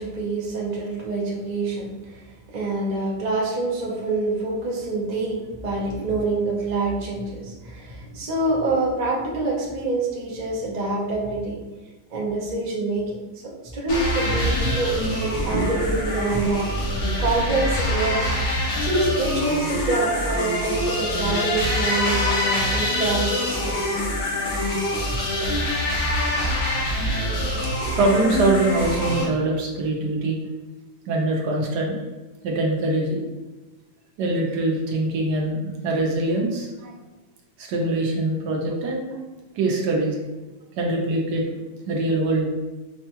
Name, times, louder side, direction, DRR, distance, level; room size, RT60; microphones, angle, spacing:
voice 1, 0.0-2.2 2.5-11.6 12.1-18.3 18.8-24.0, right 2 dB, 45° right, -4 dB, 0.5 m, -26 dB
sound 1, 13.9-29.3, left 1 dB, 70° left, 1.6 m, -25 dB
voice 2, 27.9-30.4 31.1-32.0 32.4-33.2 34.2-36.9 37.6-39.2 39.5-40.1 40.8-41.6 41.9-42.5, right 2 dB, 70° right, 0 dB, 1.2 m, -23 dB
5.0 x 2.2 x 2.9 m, 1.2 s
omnidirectional pair, 2.0 m